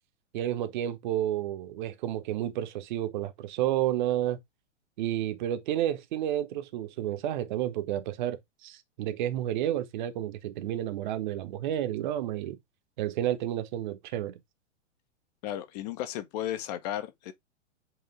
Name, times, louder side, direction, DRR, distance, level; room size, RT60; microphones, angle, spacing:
voice 1, 0.3-4.4 5.0-12.6 13.0-14.3, right 12 dB, 40° right, 1.1 m, -31 dB
voice 2, 15.4-17.3, left 12 dB, 35° left, 0.9 m, -34 dB
7.8 x 3.6 x 3.5 m
figure-of-eight pair, 105°, 36 cm